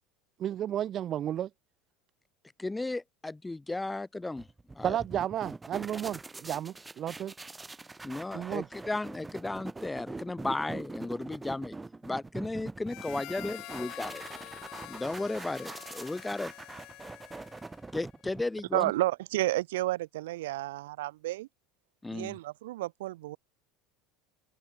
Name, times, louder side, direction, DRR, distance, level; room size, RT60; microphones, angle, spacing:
voice 1, 0.4-1.5 4.8-7.3 8.3-8.7, right 11 dB, 40° right, 0.4 m, -32 dB
voice 2, 2.6-4.5 4.7-5.0 8.0-11.8 12.0-14.2 14.8-16.5 17.9-18.9 22.0-22.4, left 2 dB, 10° left, 1.4 m, -35 dB
sound 1, 4.4-18.7, right 3 dB, 15° right, 1.2 m, -43 dB
Harmonica, 12.8-17.9, left 19 dB, 60° left, 1.2 m, -46 dB
voice 3, 18.7-21.5 22.1-23.4, right 17 dB, 85° right, 1.0 m, -31 dB
supercardioid pair, 105°, 0 cm